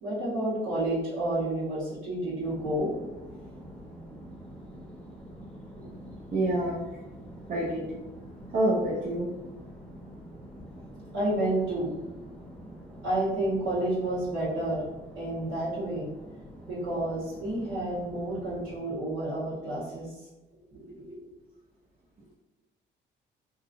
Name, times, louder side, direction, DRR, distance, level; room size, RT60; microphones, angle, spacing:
voice 1, 0.0-2.9 5.7-5.9 11.1-11.9 13.0-14.8 15.2-16.1 16.7-20.1 20.7-21.3, right 1 dB, 85° right, -11 dB, 1.1 m, -30 dB
sound 1, 2.4-18.8, equal, 5° left, 0.7 m, -46 dB
voice 2, 6.3-6.9 7.5-7.8 8.5-9.3, right 1 dB, 40° right, -4 dB, 0.5 m, -27 dB
2.7 x 2.4 x 2.5 m, 1.1 s
cardioid pair, 90°, 20 cm